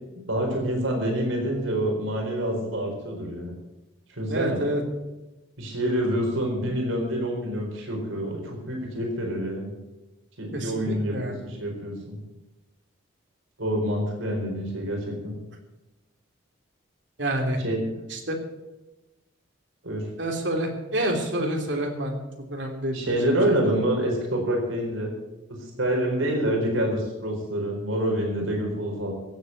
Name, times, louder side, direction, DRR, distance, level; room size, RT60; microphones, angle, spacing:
voice 1, 0.3-3.5 4.1-4.6 5.6-9.7 10.4-11.1 11.4-12.2 13.6-15.0 15.2-15.3 17.6-17.8 19.8-20.1 22.9-25.1 25.8-29.1, right 1 dB, 80° right, 1 dB, 4.3 m, -27 dB
voice 2, 4.3-4.8 10.5-11.4 17.2-17.6 18.1-18.4 20.2-22.2 22.5-23.7, right 1 dB, 65° right, 2 dB, 3.2 m, -28 dB
15.5 x 8.1 x 8.1 m, 1.0 s
head